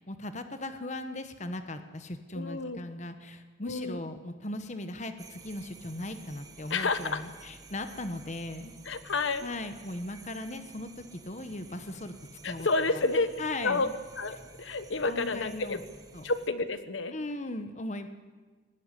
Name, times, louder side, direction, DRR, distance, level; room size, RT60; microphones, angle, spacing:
voice 1, 0.0-8.7 9.4-12.1 12.4-12.7 13.4-13.9 15.1-15.8 16.1-16.2 17.1-18.1, left 2 dB, 35° left, 9 dB, 1.2 m, -38 dB
voice 2, 2.3-2.8 3.6-4.0 6.7-7.2 8.8-9.5 12.4-13.9 14.2-15.8 16.2-17.1, left 3 dB, 80° left, 11 dB, 1.2 m, -30 dB
sound 1, 5.2-16.5, right 3 dB, 20° right, 1.3 m, -52 dB
19.0 x 18.0 x 9.9 m, 1.4 s
head